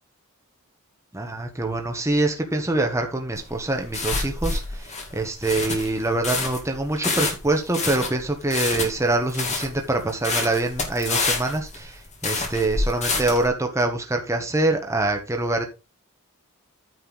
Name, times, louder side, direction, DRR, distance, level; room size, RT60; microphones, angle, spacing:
voice 1, 1.1-15.7, right 2 dB, 15° right, 1.2 m, -25 dB
sound 1, 3.4-13.5, left 3 dB, 35° left, 2.5 m, -28 dB
9.4 x 6.6 x 4.0 m
head